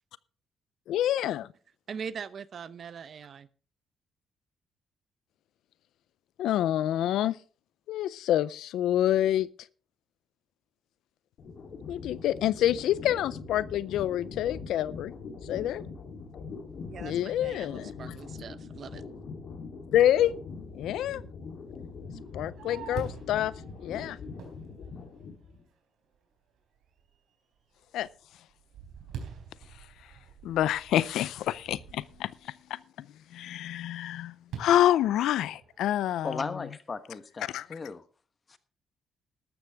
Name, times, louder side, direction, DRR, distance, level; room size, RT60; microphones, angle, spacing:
voice 1, 0.9-1.5 6.4-7.4 7.9-9.5 11.9-15.1 15.5-15.8 17.0-18.0 19.9-20.3 20.8-21.2 22.3-23.5 23.8-24.2 27.9-28.1 30.4-33.1 33.3-36.6 37.4-37.7, left 12 dB, 80° left, 0.4 m, -27 dB
voice 2, 1.9-3.5 16.9-19.0, right 7 dB, 55° right, 0.8 m, -41 dB
sound 1, 11.4-25.6, left 4 dB, 65° left, 3.2 m, -42 dB
Fireworks, 22.1-25.6 26.1-26.2 26.8-27.2 27.6-32.4 34.5-35.9, right 7 dB, 80° right, 3.9 m, -46 dB
voice 3, 36.2-38.0 38.5-38.6, left 4 dB, 35° left, 1.2 m, -36 dB
13.0 x 12.5 x 3.5 m
cardioid pair, 90°, 0 cm